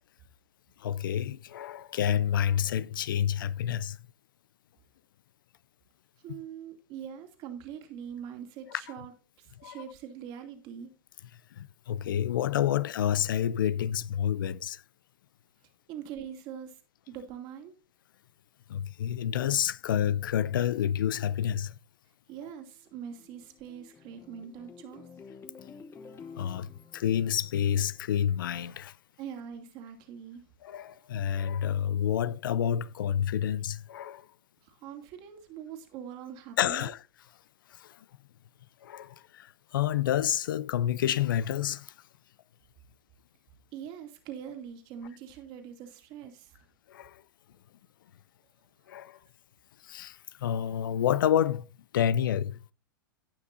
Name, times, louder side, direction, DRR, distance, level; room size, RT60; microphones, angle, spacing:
voice 1, 0.8-4.0 6.3-6.4 8.7-8.8 9.6-9.8 11.5-14.8 18.7-21.7 26.4-29.0 30.6-34.3 36.6-37.0 37.7-38.0 38.8-41.9 46.9-47.2 48.9-49.2 49.8-51.7 51.9-52.6, left 10 dB, 70° left, 0.5 m, -29 dB
voice 2, 6.2-9.1 9.4-10.9 15.9-16.8 17.1-17.7 22.3-25.0 29.2-30.5 34.6-36.9 43.7-46.6, right 8 dB, 45° right, 2.5 m, -43 dB
sound 1, 22.7-28.3, left 5 dB, 20° left, 1.1 m, -51 dB
17.5 x 5.9 x 2.7 m
hypercardioid pair, 105°, 11 cm